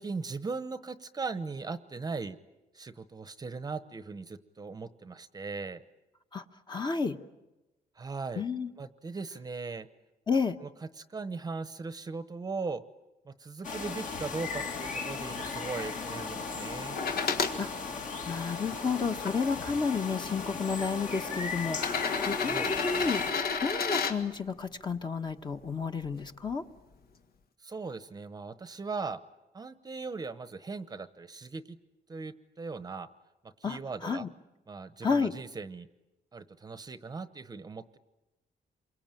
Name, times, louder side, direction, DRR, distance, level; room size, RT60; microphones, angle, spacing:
voice 1, 0.0-2.4 2.7-5.8 8.0-8.4 8.8-9.9 10.6-10.7 11.0-12.8 13.2-17.0 22.4-22.7 27.6-29.2 29.5-31.8 32.1-33.1 33.4-34.3 34.7-35.9 36.3-38.0, right 4 dB, 25° right, 13 dB, 0.9 m, -39 dB
voice 2, 6.3-7.2 8.4-8.7 10.3-10.5 17.6-17.7 18.3-23.2 23.6-26.6 33.6-34.3 35.0-35.3, left 5 dB, 30° left, 7 dB, 1.2 m, -31 dB
sound 1, 13.6-23.3, left 5 dB, 55° left, 2.7 m, -37 dB
sound 2, 17.0-17.6 18.3-19.3 20.3-20.4 21.7-24.2 26.0-26.1, left 5 dB, 75° left, 2.0 m, -31 dB
28.0 x 23.5 x 9.0 m, 1.0 s
wide cardioid pair, 160°, 16 cm